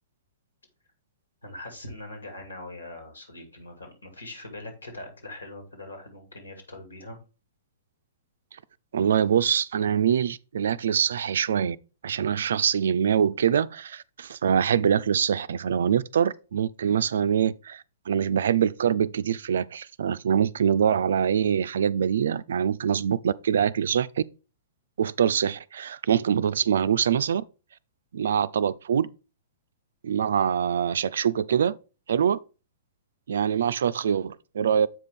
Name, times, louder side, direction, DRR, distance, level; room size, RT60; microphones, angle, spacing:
voice 1, 1.4-7.2, left 2 dB, 80° left, 2.4 m, -42 dB
voice 2, 8.9-11.8 12.0-24.2 25.0-27.4 28.1-29.1 30.0-31.8 32.1-32.4 33.3-34.9, right 8 dB, 65° right, 0.4 m, -24 dB
7.6 x 5.1 x 3.6 m
figure-of-eight pair, 110°, 0 cm